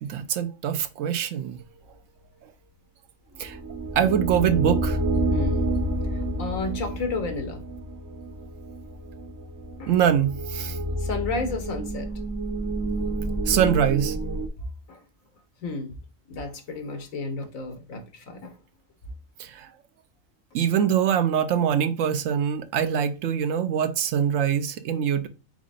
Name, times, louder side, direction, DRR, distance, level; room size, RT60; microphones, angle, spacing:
voice 1, 0.0-1.6 3.4-3.6 3.9-5.0 9.9-10.8 13.5-14.2 19.4-19.7 20.5-25.3, right 8 dB, 75° right, 1.0 m, -23 dB
sound 1, 3.4-14.5, right 1 dB, 30° right, 0.3 m, -29 dB
voice 2, 5.3-5.7 6.1-7.6 9.8-9.9 11.0-12.1 14.9-15.0 15.6-15.9 16.3-18.5, left 3 dB, 75° left, 1.6 m, -32 dB
4.8 x 4.2 x 2.5 m
omnidirectional pair, 1.4 m